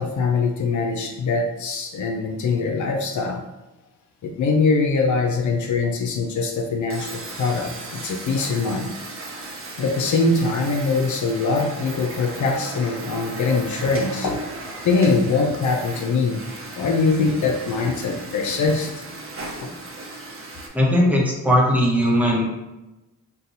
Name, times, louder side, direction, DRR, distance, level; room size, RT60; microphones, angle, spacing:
voice 1, 0.0-3.4 4.2-8.9 9.8-14.4 14.8-16.4 16.8-18.9 19.6-19.7, left 4 dB, 60° left, 3 dB, 0.6 m, -22 dB
sound 1, 6.9-20.7, right 2 dB, 40° right, 0.8 m, -36 dB
voice 2, 20.7-22.5, equal, 5° right, -3 dB, 1.1 m, -18 dB
2.7 x 2.2 x 3.9 m, 1.0 s
supercardioid pair, 60°, 34 cm